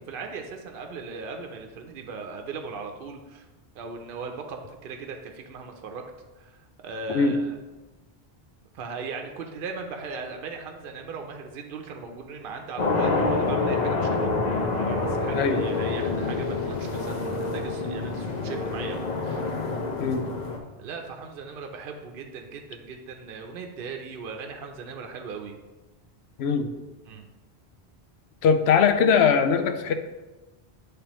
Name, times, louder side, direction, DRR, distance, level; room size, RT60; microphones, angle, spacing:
voice 1, 0.0-3.5 3.7-6.0 6.4-7.6 8.7-14.3 14.8-19.4 20.8-25.6 27.1-27.4, right 4 dB, 65° right, 3 dB, 0.8 m, -38 dB
sound 1, 12.8-20.6, left 3 dB, 45° left, 0.8 m, -27 dB
voice 2, 15.3-15.7 20.0-20.3 26.4-26.7 28.4-29.9, left 6 dB, 85° left, 8 dB, 0.8 m, -21 dB
10.0 x 3.3 x 3.0 m, 1.2 s
omnidirectional pair, 1.1 m